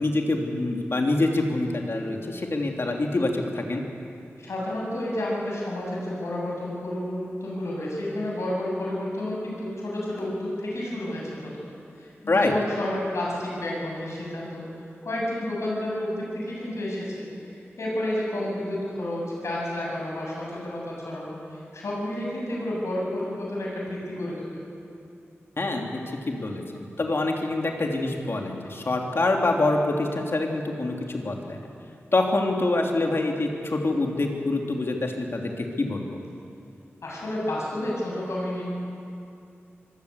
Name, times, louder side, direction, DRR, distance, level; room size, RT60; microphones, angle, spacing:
voice 1, 0.0-3.8 12.3-12.5 25.6-26.0 26.3-31.7 32.1-36.2, left 2 dB, 60° left, 1 dB, 3.1 m, -26 dB
voice 2, 4.4-11.7 12.0-14.6 15.0-21.4 21.7-24.6 37.0-38.6, left 1 dB, 85° left, -4 dB, 7.6 m, -30 dB
25.0 x 15.0 x 8.2 m, 2.5 s
wide cardioid pair, 60°, 5 cm